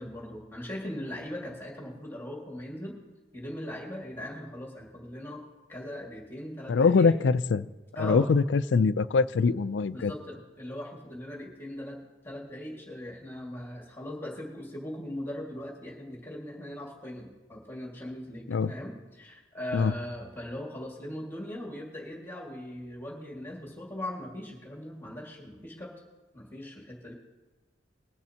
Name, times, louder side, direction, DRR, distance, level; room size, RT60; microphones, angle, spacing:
voice 1, 0.0-2.9 3.3-5.4 5.7-7.1 7.9-8.3 9.9-25.9 26.3-27.1, left 1 dB, 10° left, -2 dB, 1.9 m, -39 dB
voice 2, 6.7-7.7 8.0-10.1 18.5-18.7 19.7-19.9, left 4 dB, 75° left, 15 dB, 0.4 m, -23 dB
20.5 x 10.5 x 2.8 m, 1.2 s
head